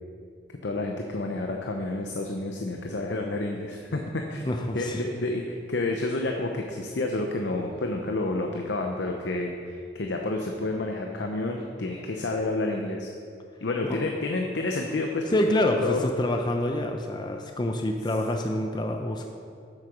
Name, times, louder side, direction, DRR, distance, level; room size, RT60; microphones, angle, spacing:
voice 1, 0.6-13.1 13.6-15.2 15.6-16.0, left 2 dB, 75° left, 2 dB, 0.7 m, -30 dB
voice 2, 4.4-5.0 13.8-14.0 15.3-19.2, left 1 dB, 25° left, 3 dB, 0.5 m, -26 dB
7.9 x 7.5 x 5.9 m, 2.4 s
head